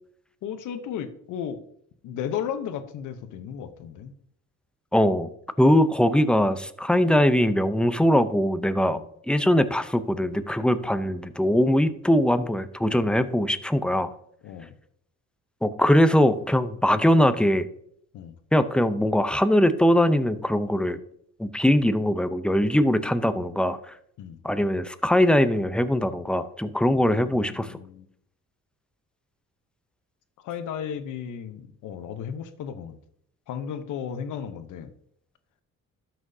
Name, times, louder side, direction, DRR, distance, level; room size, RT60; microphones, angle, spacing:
voice 1, 0.4-1.6 2.0-4.1 8.8-9.1 12.8-13.1 14.4-14.7 18.1-18.4 24.2-24.4 26.9-28.1 30.4-33.0 33.5-34.9, left 8 dB, 85° left, 10 dB, 0.9 m, -35 dB
voice 2, 4.9-5.3 5.6-9.0 9.3-14.1 15.6-17.6 18.5-21.0 21.4-23.9 24.4-27.8, equal, 5° left, 11 dB, 0.6 m, -21 dB
12.5 x 6.1 x 2.8 m, 0.69 s
cardioid pair, 90°, 30 cm